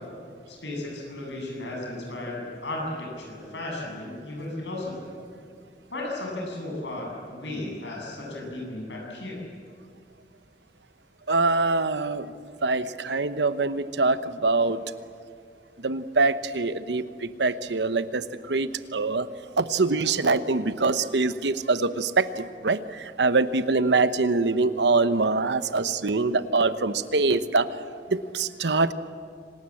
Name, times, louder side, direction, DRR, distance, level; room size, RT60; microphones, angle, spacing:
voice 1, 0.5-5.1 5.9-9.4, left 1 dB, 80° left, -1 dB, 7.6 m, -35 dB
voice 2, 11.3-12.3 12.6-14.8 15.8-19.3 19.6-27.7 28.1-28.9, right 3 dB, 75° right, 13 dB, 1.0 m, -24 dB
26.0 x 19.0 x 8.6 m, 2.2 s
head